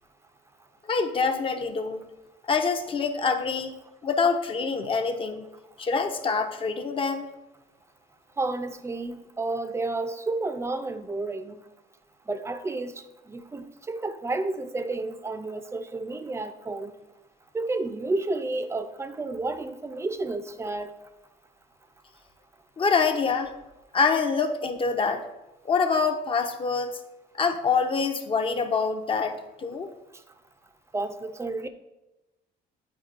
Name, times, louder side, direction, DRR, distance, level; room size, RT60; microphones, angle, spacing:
voice 1, 0.8-2.0 2.4-3.7 4.0-5.5 5.8-7.3 22.8-23.5 23.9-25.2 25.6-27.0 27.3-29.9, left 5 dB, 30° left, 7 dB, 0.6 m, -25 dB
voice 2, 8.4-11.6 12.3-12.9 13.3-16.9 17.5-20.9 30.9-31.7, right 2 dB, 15° right, 9 dB, 0.4 m, -31 dB
9.2 x 4.5 x 2.5 m, 1.0 s
cardioid pair, 110°, 17 cm